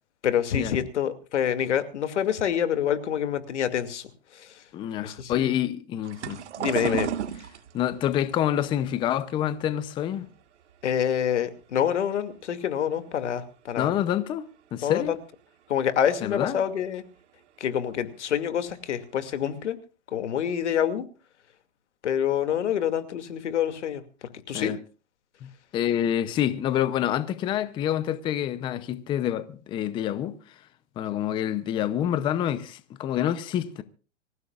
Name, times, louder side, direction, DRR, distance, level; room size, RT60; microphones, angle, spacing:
voice 1, 0.2-4.5 5.0-5.5 6.6-7.1 10.8-13.9 14.8-15.2 15.7-17.0 17.6-19.8 20.1-21.1 22.0-24.0 24.5-24.7, left 9 dB, 90° left, 2.5 m, -27 dB
voice 2, 4.7-6.4 6.8-7.1 7.7-10.3 13.8-15.1 16.2-16.6 24.5-24.8 25.4-30.7 31.0-33.8, left 11 dB, 15° left, 0.6 m, -27 dB
sound 1, 6.0-11.2 11.5-12.4 12.9-13.2 13.5-13.6 14.8-14.9 15.4-15.5 16.1-16.2 16.4-16.7 17.9-18.1 18.7-18.8 19.2-19.6, right 9 dB, 80° right, 1.7 m, -35 dB
25.5 x 15.5 x 2.4 m
hypercardioid pair, 155°, 34 cm